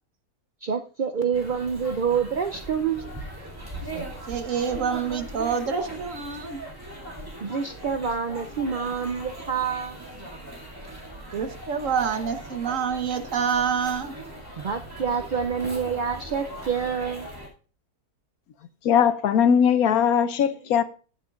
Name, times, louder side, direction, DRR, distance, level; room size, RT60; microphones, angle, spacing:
voice 1, 0.6-3.2 7.4-10.0 14.6-17.3, right 6 dB, 75° right, 0.4 m, -27 dB
sound 1, 1.3-17.5, right 1 dB, 15° right, 2.4 m, -39 dB
voice 2, 3.9-6.6 11.3-14.1, right 7 dB, 60° right, 1.5 m, -27 dB
voice 3, 18.8-20.8, left 8 dB, 75° left, 1.2 m, -20 dB
17.5 x 8.0 x 2.4 m
omnidirectional pair, 1.6 m